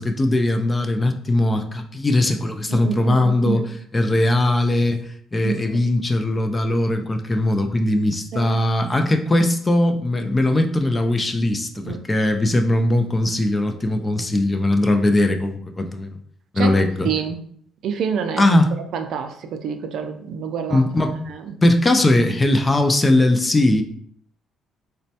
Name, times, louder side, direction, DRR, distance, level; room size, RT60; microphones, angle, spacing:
voice 1, 0.0-16.2 16.5-17.1 18.4-18.8 20.7-21.3 21.6-23.8, left 1 dB, 20° left, 6 dB, 0.3 m, -20 dB
voice 2, 2.7-3.6 5.4-5.8 8.3-8.6 11.8-12.0 16.6-17.4 17.8-18.4 18.9-20.8 21.5-21.6, right 7 dB, 70° right, 7 dB, 0.4 m, -27 dB
4.1 x 2.2 x 2.7 m, 0.63 s
cardioid pair, 130°, 0 cm